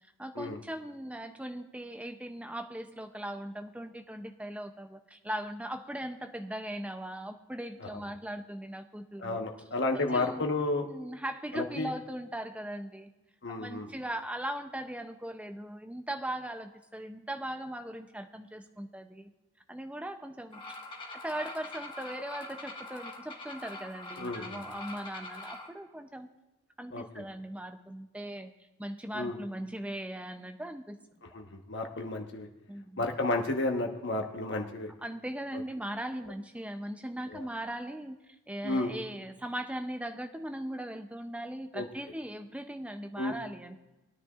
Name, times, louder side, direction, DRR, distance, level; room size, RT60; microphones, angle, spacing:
voice 1, 0.2-9.5 9.9-10.4 10.8-13.1 13.5-19.3 19.7-20.6 21.1-26.3 26.8-28.5 28.8-31.0 32.7-33.1 35.0-38.2 38.5-43.8, right 1 dB, 5° right, 6 dB, 0.5 m, -39 dB
voice 2, 9.2-10.9 11.5-11.9 13.4-13.9 24.2-24.6 26.9-27.2 29.1-29.4 31.3-32.5 33.0-34.9 37.3-37.4 38.6-38.9 41.7-41.8 43.2-43.3, left 2 dB, 50° left, 3 dB, 1.2 m, -32 dB
sound 1, 20.5-25.7, left 2 dB, 20° left, 1.4 m, -44 dB
20.5 x 9.9 x 2.5 m, 1.0 s
head